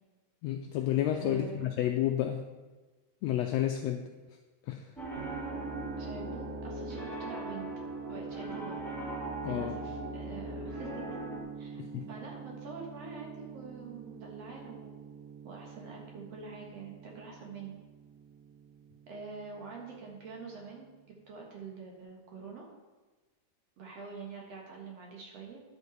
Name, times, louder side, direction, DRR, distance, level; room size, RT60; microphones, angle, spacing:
voice 1, 0.4-2.4 3.2-4.1 4.7-4.8 9.4-9.7 11.7-12.0, left 11 dB, 90° left, 4 dB, 1.5 m, -30 dB
voice 2, 1.1-1.7 6.0-7.7 8.1-8.8 9.4-11.0 11.6-15.0 15.4-17.8 19.1-22.7 23.8-25.6, right 4 dB, 60° right, -1 dB, 2.4 m, -45 dB
Piano, 5.0-11.4, equal, ahead, 2.1 m, -40 dB
sound 1, 5.2-21.1, right 6 dB, 85° right, 1.5 m, -45 dB
10.5 x 7.1 x 4.1 m, 1.2 s
omnidirectional pair, 3.6 m